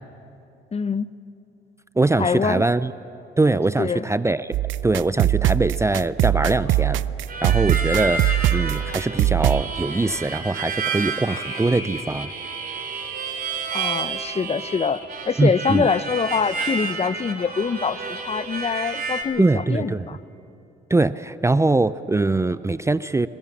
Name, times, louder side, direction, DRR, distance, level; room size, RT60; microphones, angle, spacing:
voice 1, 0.7-1.1 2.2-2.6 3.8-4.1 13.7-20.2, left 5 dB, 30° left, 16 dB, 0.6 m, -24 dB
voice 2, 2.0-2.9 3.4-4.6 4.8-7.0 7.4-12.3 15.4-15.9 19.4-20.1 20.9-23.3, right 2 dB, 15° right, 14 dB, 0.5 m, -22 dB
sound 1, 4.5-9.6, right 14 dB, 75° right, 0.5 m, -21 dB
sound 2, 6.1-19.3, left 3 dB, 70° left, 5.8 m, -45 dB
Harmonica, 7.3-19.2, right 4 dB, 45° right, 3.1 m, -30 dB
22.0 x 21.5 x 7.1 m, 2.8 s
cardioid pair, 90°, 20 cm